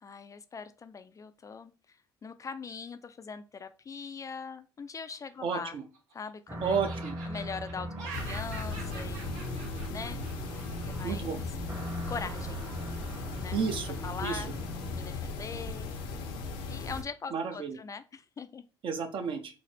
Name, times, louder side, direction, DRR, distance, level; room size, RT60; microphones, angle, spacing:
voice 1, 0.0-5.8 6.1-6.7 7.3-9.4 9.9-10.3 10.8-11.3 12.1-12.7 13.4-13.6 14.0-14.5 14.9-15.9 16.7-18.6, left 5 dB, 30° left, 11 dB, 0.4 m, -41 dB
voice 2, 5.4-5.8 6.6-7.2 11.0-11.4 13.5-14.0 14.2-14.4 17.3-17.8 18.8-19.6, right 6 dB, 50° right, 7 dB, 0.7 m, -32 dB
Laughter, 5.5-6.3 6.7-11.0, right 4 dB, 80° right, 1.2 m, -46 dB
sound 1, 6.5-15.0, equal, 25° right, 1.1 m, -40 dB
sound 2, 8.1-17.0, left 3 dB, 85° left, 0.8 m, -38 dB
3.9 x 2.0 x 3.3 m, 0.33 s
supercardioid pair, 70°, 11 cm